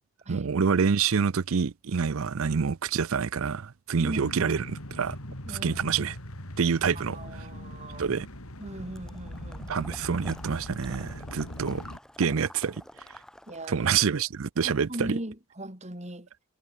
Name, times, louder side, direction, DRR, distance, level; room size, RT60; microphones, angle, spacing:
voice 1, 0.3-5.2 5.6-6.1 6.6-7.2 8.0-8.3 9.7-11.8 12.2-12.7 13.7-15.2, right 6 dB, 65° right, 0.5 m, -27 dB
voice 2, 4.0-4.3 5.5-5.8 6.9-8.2 8.6-9.7 13.5-13.9 14.6-16.3, right 1 dB, 30° right, 4.1 m, -39 dB
sound 1, 4.2-12.0, left 1 dB, 75° left, 6.2 m, -41 dB
Water / Liquid, 9.0-13.8, equal, 5° left, 2.1 m, -49 dB
head